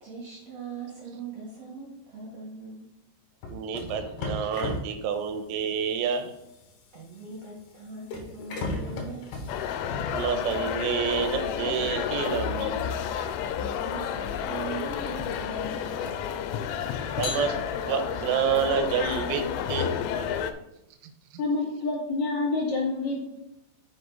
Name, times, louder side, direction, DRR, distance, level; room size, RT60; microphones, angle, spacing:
voice 1, 0.0-2.8 6.9-9.4 13.5-16.0, right 4 dB, 65° right, -4 dB, 1.6 m, -40 dB
sound 1, 3.4-11.0 12.4-12.6 13.3-16.6 17.1-18.0, left 3 dB, 70° left, 3.3 m, -38 dB
voice 2, 3.5-6.3 10.1-12.8 17.2-17.6 17.9-19.9, right 7 dB, 85° right, 6 dB, 3.4 m, -28 dB
sound 2, 9.5-20.5, left 8 dB, 85° left, 3.1 m, -31 dB
voice 3, 21.4-23.4, left 3 dB, 50° left, -4 dB, 2.7 m, -28 dB
7.9 x 6.4 x 3.9 m, 0.88 s
omnidirectional pair, 5.5 m